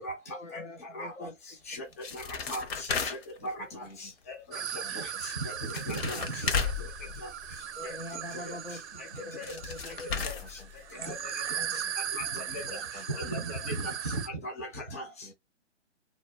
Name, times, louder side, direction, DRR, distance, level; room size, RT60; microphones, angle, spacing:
voice 1, 0.3-1.3 6.1-6.6 7.7-10.2 11.0-11.2 11.6-11.8, left 2 dB, 90° left, 1.2 m, -44 dB
sound 1, 1.7-3.5 5.3-5.4 5.6-7.8 9.1-9.2 9.4-11.1 11.5-11.6 11.8-11.9 12.4-12.5 12.7-12.8, left 5 dB, 60° left, 0.8 m, -34 dB
sound 2, 4.5-14.3, right 9 dB, 70° right, 0.5 m, -38 dB
voice 2, 5.9-6.2 7.8-7.9 10.2-10.3 12.2-12.4 13.2-13.7 14.4-15.0, right 1 dB, 15° left, 0.3 m, -36 dB
voice 3, 12.4-13.0 13.8-13.9 15.2-15.3, left 1 dB, 75° left, 1.3 m, -50 dB
2.9 x 2.1 x 2.8 m
hypercardioid pair, 145°, 36 cm